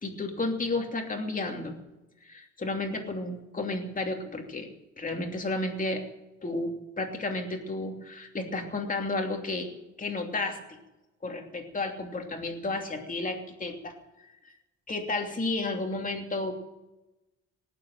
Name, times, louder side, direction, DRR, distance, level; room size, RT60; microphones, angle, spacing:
voice 1, 0.0-1.7 2.2-4.7 5.0-6.0 6.4-9.7 10.0-10.8 11.2-13.9 14.9-16.5, left 2 dB, 25° left, 2 dB, 2.9 m, -32 dB
18.5 x 7.8 x 9.2 m, 1.0 s
cardioid pair, 105°, 31 cm